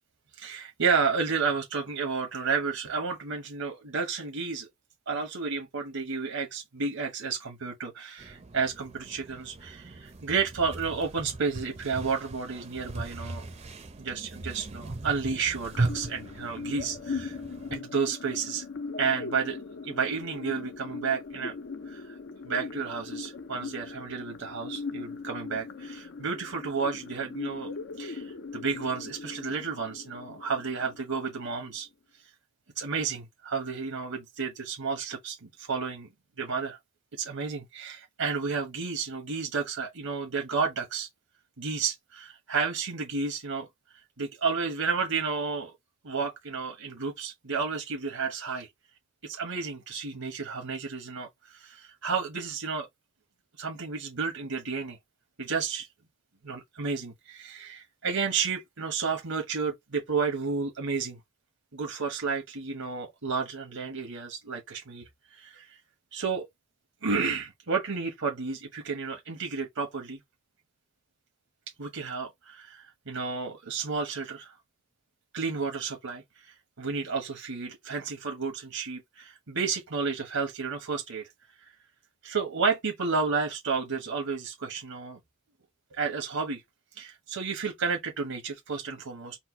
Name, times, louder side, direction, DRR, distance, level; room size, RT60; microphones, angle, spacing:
voice 1, 0.4-4.7 5.1-13.5 14.0-17.4 17.7-18.6 19.0-19.6 19.8-21.5 21.9-22.2 22.4-27.7 28.0-31.9 32.8-36.1 36.4-36.8 37.1-41.1 41.6-43.7 44.2-45.7 46.0-48.7 49.2-52.9 53.6-55.0 55.4-55.9 56.4-61.2 61.7-65.0 65.3-65.8 66.1-66.5 67.0-70.2 71.8-74.5 75.3-81.3 82.2-85.2 85.9-86.6 87.0-89.4, right 5 dB, 80° right, 1.2 m, -31 dB
sound 1, 8.2-17.8, right 2 dB, 30° right, 0.6 m, -38 dB
sound 2, 15.7-31.7, left 4 dB, 55° left, 0.6 m, -40 dB
4.4 x 2.2 x 4.4 m
head